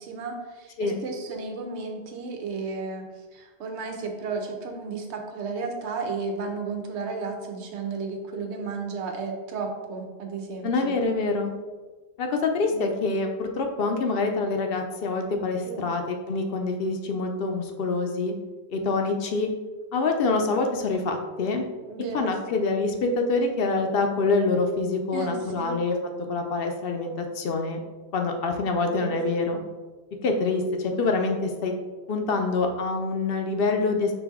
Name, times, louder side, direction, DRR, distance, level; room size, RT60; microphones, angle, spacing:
voice 1, 0.0-3.1 3.3-10.9 12.7-12.8 15.7-15.9 21.8-22.3 25.1-25.7 28.8-29.2, right 4 dB, 90° right, 3 dB, 1.0 m, -33 dB
voice 2, 10.6-11.5 12.2-18.3 18.7-19.5 19.9-21.6 22.1-26.0 26.3-27.8 28.1-29.6 30.2-31.7 32.1-34.1, left 3 dB, 65° left, 4 dB, 0.7 m, -26 dB
5.1 x 2.7 x 3.6 m, 1.3 s
omnidirectional pair, 1.1 m